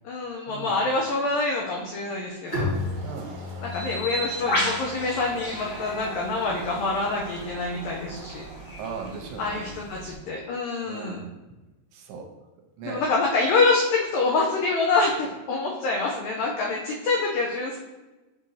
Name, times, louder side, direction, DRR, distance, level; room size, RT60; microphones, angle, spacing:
voice 1, 0.1-2.7 3.6-8.5 9.4-11.2 12.8-17.8, left 3 dB, 85° left, -1 dB, 1.9 m, -26 dB
Bowed string instrument, 2.5-6.0, left 2 dB, 30° left, 1.0 m, -34 dB
sound 1, 2.5-9.1, right 3 dB, 70° right, 2.7 m, -43 dB
Bird, 3.7-10.1, equal, 45° left, 1.5 m, -34 dB
voice 2, 8.8-9.7 10.9-11.2 11.9-12.2 12.8-13.0, right 5 dB, 85° right, 1 dB, 2.8 m, -37 dB
7.2 x 4.8 x 2.7 m, 1.1 s
omnidirectional pair, 4.8 m